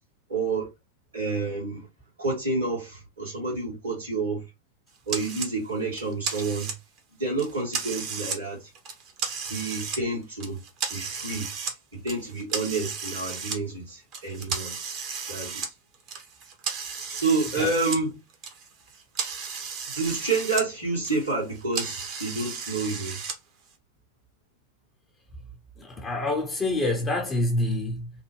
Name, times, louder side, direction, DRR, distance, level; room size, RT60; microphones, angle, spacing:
voice 1, 0.3-0.7 1.1-1.9 2.2-4.4 5.1-6.7 7.2-8.7 9.5-10.6 10.9-11.5 12.0-14.8 15.3-15.6 17.1-18.1 19.9-23.2, right 3 dB, 75° right, 1.8 m, -29 dB
sound 1, 5.1-5.5 5.9-7.0 7.4-8.4 8.8-10.0 10.4-11.8 12.1-13.6 14.1-18.0 18.3-20.7 20.9-23.4, right 5 dB, 40° right, 0.9 m, -34 dB
voice 2, 25.8-28.1, left 2 dB, 15° left, 0.7 m, -27 dB
3.2 x 2.1 x 3.1 m
figure-of-eight pair, 90°, 0 cm